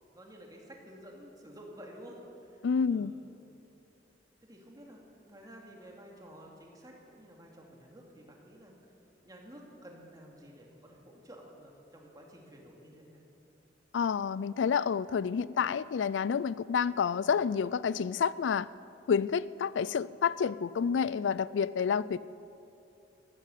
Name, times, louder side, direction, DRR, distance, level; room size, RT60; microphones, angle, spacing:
voice 1, 0.1-3.2 4.4-8.7 9.2-13.2, equal, 20° right, -1 dB, 2.6 m, -51 dB
voice 2, 2.6-3.1 13.9-18.7 19.1-22.2, left 6 dB, 85° left, 18 dB, 0.4 m, -29 dB
14.0 x 12.5 x 8.2 m, 2.9 s
head